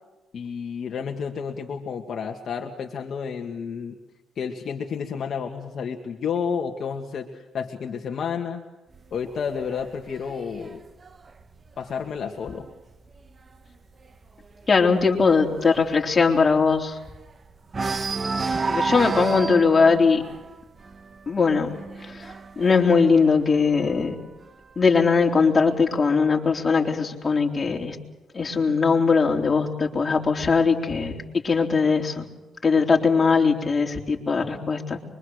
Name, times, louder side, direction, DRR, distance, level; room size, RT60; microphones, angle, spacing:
voice 1, 0.3-4.0 4.4-8.6 9.1-10.8 11.8-12.7 18.9-19.1, left 6 dB, 55° left, 2 dB, 1.9 m, -31 dB
sound 1, 8.9-12.5 13.0-13.3 13.5-13.6 14.0-17.3 17.7-24.2 25.1-26.1, right 4 dB, 35° right, 1.0 m, -32 dB
voice 2, 14.7-17.0 18.7-20.2 21.3-21.7 22.0-24.1 24.8-28.0 28.3-32.3 32.6-35.0, left 4 dB, 30° left, 0 dB, 3.8 m, -20 dB
25.0 x 23.5 x 6.6 m, 1.0 s
cardioid pair, 90°, 0 cm